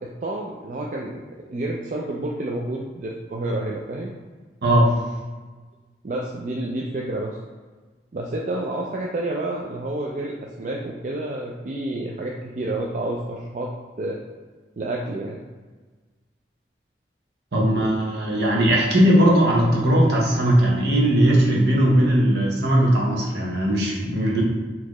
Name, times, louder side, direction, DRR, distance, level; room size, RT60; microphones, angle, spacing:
voice 1, 0.0-4.2 6.0-7.4 8.1-13.7 14.0-14.2 14.8-15.5, right 2 dB, 45° right, -2 dB, 0.4 m, -29 dB
voice 2, 4.6-4.9 17.5-24.4, equal, 70° right, -2 dB, 0.9 m, -19 dB
4.2 x 2.8 x 3.0 m, 1.3 s
head